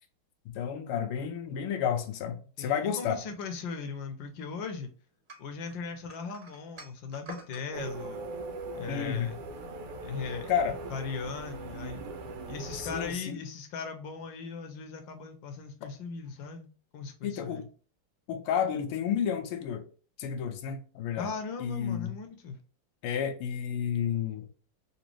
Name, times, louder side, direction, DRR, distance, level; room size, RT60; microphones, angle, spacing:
voice 1, 0.5-3.2 8.9-9.3 10.5-10.8 12.7-13.4 17.2-17.6 18.3-19.9 20.2-21.3 21.6-22.1 23.0-24.5, left 8 dB, 85° left, 1.6 m, -31 dB
voice 2, 2.6-4.9 5.4-8.3 8.7-9.4 10.0-10.5 10.9-12.0 12.5-16.7 16.9-17.7 21.2-22.6, left 5 dB, 70° left, 1.4 m, -38 dB
sound 1, 5.3-7.7, right 1 dB, 25° right, 1.8 m, -47 dB
sound 2, 7.7-13.1, right 3 dB, 90° right, 1.7 m, -40 dB
4.1 x 3.0 x 3.0 m
omnidirectional pair, 2.4 m